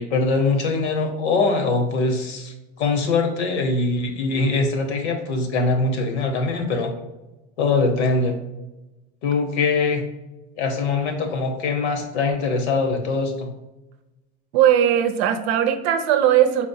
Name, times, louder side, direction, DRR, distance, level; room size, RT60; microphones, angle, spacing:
voice 1, 0.0-6.9 7.6-8.4 9.2-10.1 10.6-13.5, left 3 dB, 80° left, 5 dB, 1.0 m, -22 dB
voice 2, 14.5-16.7, right 10 dB, 65° right, 8 dB, 0.6 m, -18 dB
4.9 x 3.6 x 2.6 m, 1.0 s
hypercardioid pair, 100°, 34 cm